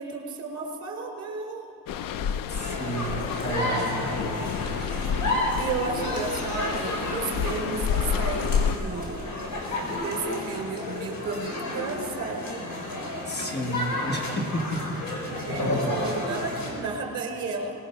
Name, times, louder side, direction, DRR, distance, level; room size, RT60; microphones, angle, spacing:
voice 1, 0.0-1.6 3.4-4.0 4.9-5.1 5.6-9.2 9.9-12.7 15.5-17.7, right 4 dB, 50° right, 2 dB, 4.1 m, -33 dB
sound 1, 1.9-8.8, left 8 dB, 80° left, 0.7 m, -30 dB
sound 2, 2.5-16.7, left 1 dB, 60° left, 5.1 m, -31 dB
voice 2, 2.5-5.1 13.3-15.6, right 1 dB, 30° left, 3 dB, 1.6 m, -33 dB
25.0 x 19.5 x 5.7 m, 2.6 s
cardioid pair, 145°, 33 cm